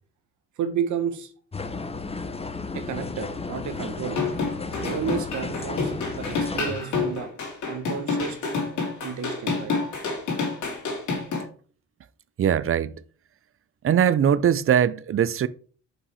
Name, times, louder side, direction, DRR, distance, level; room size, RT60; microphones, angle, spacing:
voice 1, 0.6-1.3 2.7-4.2 4.8-7.3 7.7-8.4 9.0-9.7, right 7 dB, 70° right, 1.5 m, -31 dB
sound 1, 1.5-6.7, left 3 dB, 20° left, 0.8 m, -34 dB
sound 2, 4.1-11.4, left 4 dB, 70° left, 2.6 m, -28 dB
voice 2, 12.4-12.9 13.8-15.5, right 9 dB, 45° right, 0.6 m, -21 dB
5.7 x 5.4 x 4.8 m
supercardioid pair, 65°, 31 cm